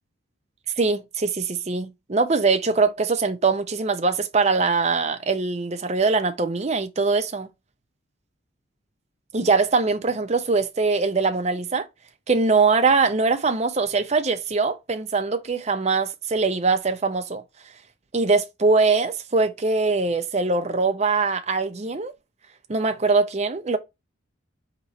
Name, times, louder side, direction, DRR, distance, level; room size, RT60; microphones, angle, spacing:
voice 1, 0.8-7.5 9.3-11.9 12.3-17.4 18.1-22.1 22.7-23.8, right 4 dB, 30° right, 0.6 m, -22 dB
4.4 x 2.9 x 4.1 m
head